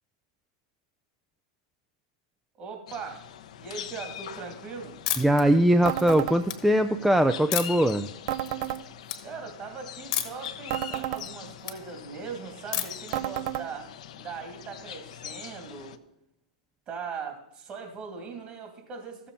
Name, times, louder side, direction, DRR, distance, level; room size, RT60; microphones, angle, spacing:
voice 1, 2.6-3.2 3.6-5.0 9.2-16.0 16.9-19.3, right 5 dB, 35° right, 4 dB, 2.9 m, -40 dB
sound 1, 2.9-16.0, left 10 dB, 70° left, 0.7 m, -43 dB
sound 2, 5.1-5.4 5.9-6.5 7.5-7.9 8.4-8.8 9.0-9.2 10.1-10.5 10.9-11.8 12.7-13.1, left 11 dB, 55° left, 1.3 m, -31 dB
voice 2, 5.2-8.1, right 1 dB, 5° right, 8 dB, 0.4 m, -21 dB
sound 3, 5.9-6.4 8.3-8.8 10.7-11.2 13.1-13.7, right 13 dB, 55° right, 0.6 m, -31 dB
14.0 x 7.2 x 4.2 m, 0.82 s
hypercardioid pair, 110°, 4 cm